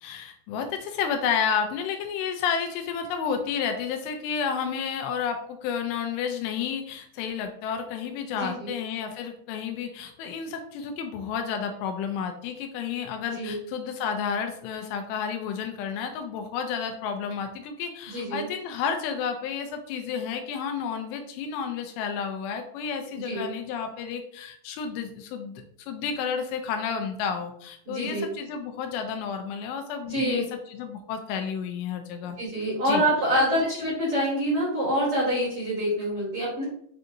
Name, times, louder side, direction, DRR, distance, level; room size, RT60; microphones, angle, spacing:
voice 1, 0.0-32.4 32.9-33.0 33.5-33.7, left 7 dB, 85° left, 5 dB, 2.7 m, -31 dB
voice 2, 8.3-8.7 13.3-13.6 18.1-18.5 23.2-23.5 27.9-28.3 30.1-30.4 32.4-36.6, equal, 45° right, -9 dB, 2.1 m, -26 dB
7.6 x 2.7 x 2.6 m, 0.64 s
omnidirectional pair, 5.0 m